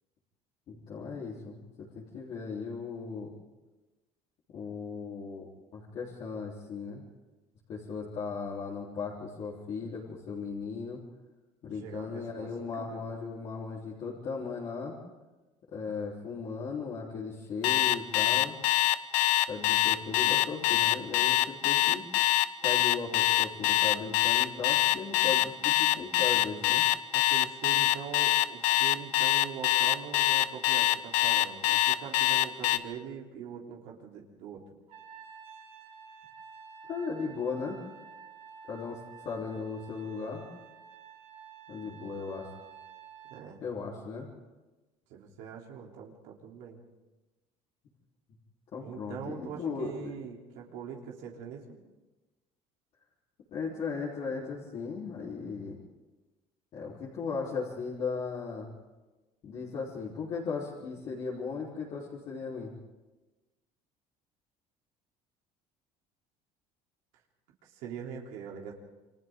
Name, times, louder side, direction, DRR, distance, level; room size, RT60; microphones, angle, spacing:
voice 1, 0.7-3.3 4.5-7.0 7.7-11.0 11.6-15.0 15.7-18.5 19.5-22.0 22.6-26.8 36.9-37.8 38.7-40.5 41.7-42.5 43.6-44.3 48.7-50.1 53.5-55.8 56.7-58.7 59.4-62.7, left 5 dB, 50° left, -6 dB, 3.7 m, -37 dB
voice 2, 11.8-13.0 27.1-34.6 43.3-43.6 45.1-46.8 48.8-51.8 67.6-68.7, right 7 dB, 75° right, -1 dB, 3.3 m, -42 dB
Alarm, 17.6-32.8, left 15 dB, 70° left, 0.9 m, -24 dB
Trumpet, 34.9-43.5, right 7 dB, 55° right, 3.1 m, -50 dB
28.0 x 25.0 x 3.8 m, 1.1 s
cardioid pair, 140°, 13 cm